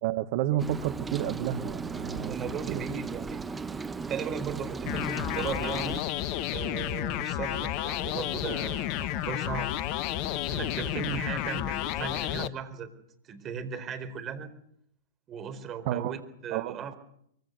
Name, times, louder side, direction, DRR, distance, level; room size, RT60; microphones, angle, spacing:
voice 1, 0.0-2.4 2.7-2.8 15.8-16.2 16.5-16.9, right 12 dB, 45° right, 11 dB, 1.4 m, -30 dB
Rain, 0.6-6.0, right 4 dB, 10° right, 1.4 m, -36 dB
voice 2, 2.3-3.5 4.1-6.0 6.5-9.7 10.5-12.9 13.3-14.5 15.3-16.9, right 6 dB, 30° right, 9 dB, 4.2 m, -37 dB
sound 1, 4.9-12.5, left 12 dB, 40° left, 1.2 m, -31 dB
24.5 x 23.5 x 6.8 m, 0.70 s
figure-of-eight pair, 105°, 0 cm